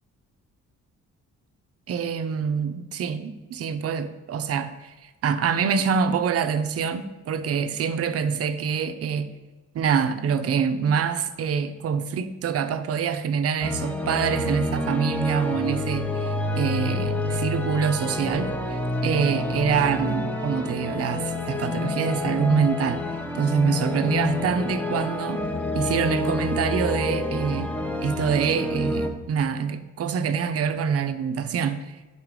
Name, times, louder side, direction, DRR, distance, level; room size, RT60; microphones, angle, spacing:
voice 1, 1.9-9.3 9.7-23.0 23.3-25.5 25.7-27.7 28.0-32.0, right 6 dB, 55° right, 0.6 m, -25 dB
sound 1, 13.6-29.1, left 2 dB, 5° left, 0.8 m, -28 dB
5.7 x 3.7 x 4.7 m
cardioid pair, 90°, 30 cm